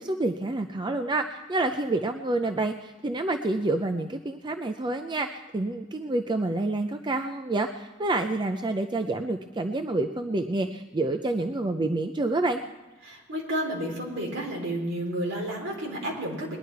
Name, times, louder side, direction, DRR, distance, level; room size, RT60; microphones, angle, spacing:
voice 1, 0.0-12.6, right 2 dB, 25° right, 6 dB, 0.5 m, -28 dB
voice 2, 13.0-16.6, right 1 dB, 65° right, -1 dB, 3.8 m, -31 dB
20.0 x 11.0 x 4.6 m, 1.1 s
head